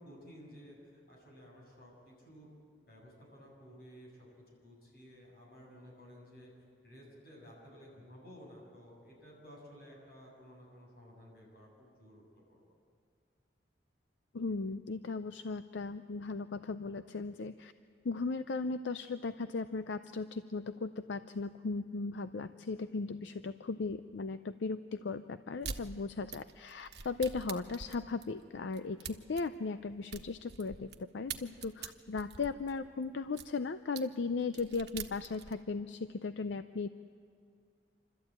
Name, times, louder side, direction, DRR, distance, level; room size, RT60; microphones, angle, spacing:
voice 1, 0.0-2.5 2.9-6.5 6.8-12.2 12.5-12.6, equal, 55° left, -2 dB, 7.2 m, -54 dB
voice 2, 14.3-17.7 18.0-36.9, left 4 dB, 80° left, 11 dB, 0.5 m, -37 dB
sound 1, 25.6-25.8 26.3-31.0 31.3-33.5 34.0-34.1 34.4-35.6, right 6 dB, 65° right, 1.2 m, -44 dB
27.0 x 13.5 x 8.9 m, 2.3 s
head